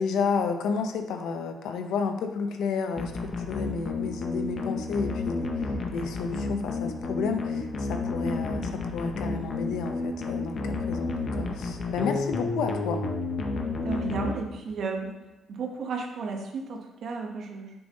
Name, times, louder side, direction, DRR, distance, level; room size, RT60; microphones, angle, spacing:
voice 1, 0.0-3.1 3.4-5.5 5.9-13.0, left 5 dB, 85° left, 6 dB, 0.6 m, -31 dB
sound 1, 3.0-14.8, left 3 dB, 50° left, 0.8 m, -31 dB
voice 2, 13.8-15.1 15.5-17.7, right 4 dB, 65° right, 2 dB, 1.0 m, -33 dB
6.8 x 3.5 x 4.0 m, 1.0 s
cardioid pair, 90°, 0 cm